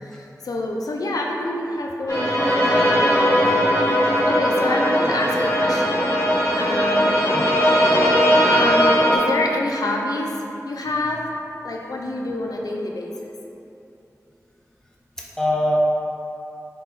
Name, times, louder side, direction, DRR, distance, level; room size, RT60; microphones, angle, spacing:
voice 1, 0.0-6.2 6.5-11.3 11.6-13.3, left 1 dB, 85° left, 0 dB, 0.3 m, -27 dB
sound 1, 2.1-9.2, equal, 60° left, 1.2 m, -19 dB
voice 2, 4.9-5.3 7.3-7.4 15.2-15.8, left 1 dB, 10° left, -3 dB, 0.6 m, -24 dB
4.0 x 2.9 x 3.5 m, 2.9 s
wide cardioid pair, 45°, 6 cm